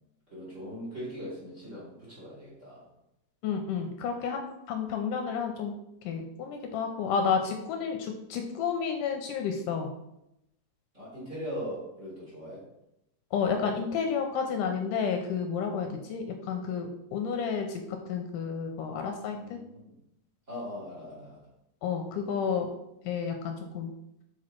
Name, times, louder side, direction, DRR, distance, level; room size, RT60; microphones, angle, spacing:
voice 1, 0.3-2.9 10.9-12.6 19.3-19.9 20.5-21.5, equal, 25° right, -6 dB, 2.2 m, -40 dB
voice 2, 3.4-5.7 6.0-9.9 13.3-19.6 21.8-22.7 23.0-23.9, left 6 dB, 80° left, 4 dB, 2.1 m, -31 dB
6.2 x 4.6 x 4.4 m, 0.83 s
omnidirectional pair, 3.9 m